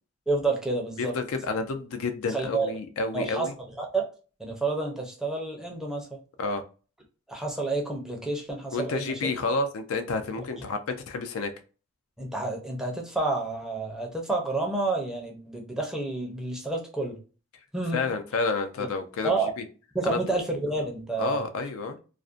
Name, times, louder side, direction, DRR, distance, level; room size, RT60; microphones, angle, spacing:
voice 1, 0.3-1.1 2.3-2.7 3.1-3.5 3.8-4.0 4.4-6.2 7.3-9.2 12.2-17.2 17.7-18.1 19.2-19.5 19.9-21.4, right 3 dB, 5° right, 0 dB, 0.5 m, -29 dB
voice 2, 1.0-3.5 6.4-6.6 8.7-11.5 17.9-19.6 20.0-20.2 21.2-21.9, left 3 dB, 75° left, 8 dB, 0.4 m, -30 dB
2.5 x 2.1 x 2.4 m, 0.35 s
head